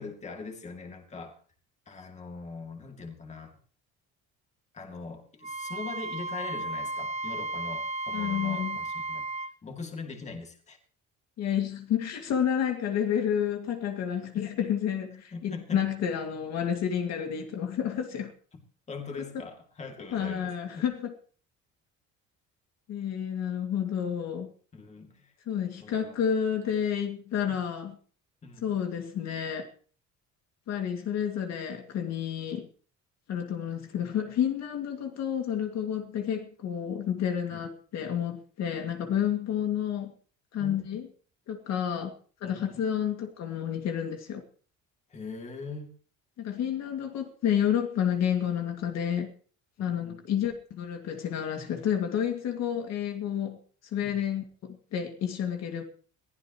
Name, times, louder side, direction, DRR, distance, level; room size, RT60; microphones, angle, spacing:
voice 1, 0.0-1.4 1.9-3.5 4.7-10.8 15.3-15.8 18.9-20.8 24.7-25.3 25.8-26.2 27.5-27.6 28.4-28.6 37.5-37.6 40.6-40.9 42.4-42.8 45.1-45.9 49.8-50.2 54.0-54.2, left 4 dB, 20° left, 2.5 m, -41 dB
Wind instrument woodwind instrument, 5.4-9.5, right 2 dB, 20° right, 0.6 m, -34 dB
voice 2, 8.1-8.8 11.4-18.3 20.1-21.1 22.9-24.5 25.5-28.0 28.6-29.7 30.7-32.7 33.3-40.1 40.5-41.1 41.5-42.1 42.4-44.4 46.4-49.3 49.8-53.6 53.9-55.8, left 9 dB, 60° left, 2.3 m, -30 dB
21.5 x 15.5 x 3.1 m
cardioid pair, 170°, 31 cm